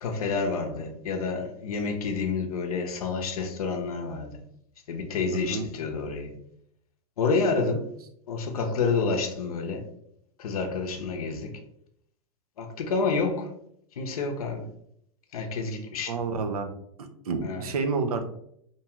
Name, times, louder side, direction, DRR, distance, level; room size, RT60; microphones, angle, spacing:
voice 1, 0.0-4.4 4.9-6.3 7.2-7.9 8.3-9.9 10.4-11.5 12.6-13.5 14.0-14.6 15.3-16.1 17.4-17.6, left 4 dB, 80° left, 3 dB, 0.6 m, -29 dB
voice 2, 5.3-5.7 16.1-16.7 17.0-18.2, right 4 dB, 85° right, 6 dB, 0.5 m, -29 dB
2.7 x 2.3 x 2.9 m, 0.71 s
hypercardioid pair, 115°, 19 cm